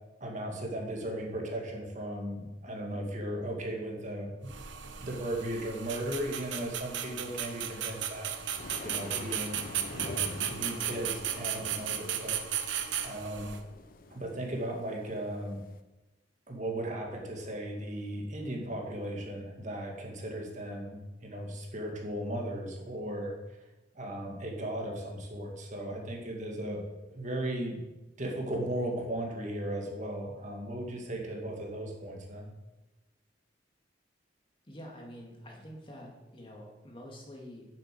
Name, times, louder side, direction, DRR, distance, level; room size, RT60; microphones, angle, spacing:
voice 1, 0.2-4.5 5.0-9.6 9.9-12.7 13.0-13.5 14.1-15.7 16.5-23.6 23.9-26.8 27.1-27.8 28.2-32.5, right 1 dB, 40° right, 0 dB, 2.2 m, -37 dB
sound 1, 4.5-13.6, right 9 dB, 90° right, 1.1 m, -35 dB
sound 2, 8.2-15.8, left 2 dB, 50° left, 0.8 m, -46 dB
voice 2, 34.7-37.7, equal, 30° left, -1 dB, 2.5 m, -47 dB
9.9 x 7.7 x 7.8 m, 1.0 s
head